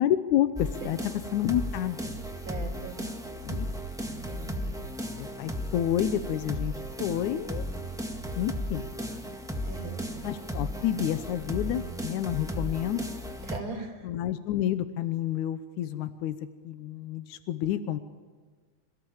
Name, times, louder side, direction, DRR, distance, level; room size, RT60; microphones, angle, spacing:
voice 1, 0.0-2.1 3.4-3.7 4.6-4.9 5.2-6.7 7.0-7.7 8.4-8.9 10.2-13.0 14.0-16.4 16.6-18.0, left 11 dB, 85° left, 10 dB, 2.3 m, -29 dB
sound 1, 0.6-13.6, equal, ahead, 1.3 m, -35 dB
voice 2, 2.5-3.0 4.3-4.7 9.7-10.0 13.5-14.0, right 3 dB, 60° right, 3 dB, 4.9 m, -39 dB
27.5 x 17.0 x 8.8 m, 1.4 s
omnidirectional pair, 3.4 m